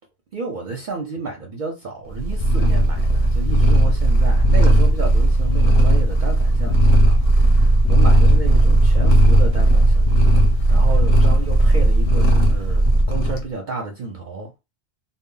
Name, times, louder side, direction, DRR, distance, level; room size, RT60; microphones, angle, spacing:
voice 1, 0.3-14.6, right 4 dB, 55° right, 0.6 m, -31 dB
Purr, 2.1-13.4, right 1 dB, 40° left, 0.6 m, -15 dB
2.1 x 2.0 x 3.7 m
omnidirectional pair, 1.1 m